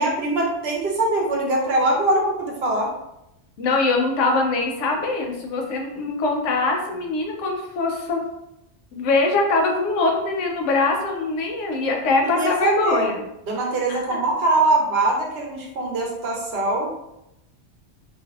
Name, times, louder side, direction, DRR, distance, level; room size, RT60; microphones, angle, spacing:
voice 1, 0.0-2.9 12.2-13.0 13.5-17.1, right 2 dB, 65° right, -1 dB, 0.8 m, -22 dB
voice 2, 3.6-8.2 8.9-13.2 13.9-14.2, left 3 dB, 85° left, 1 dB, 0.9 m, -22 dB
2.5 x 2.2 x 2.3 m, 0.86 s
omnidirectional pair, 1.2 m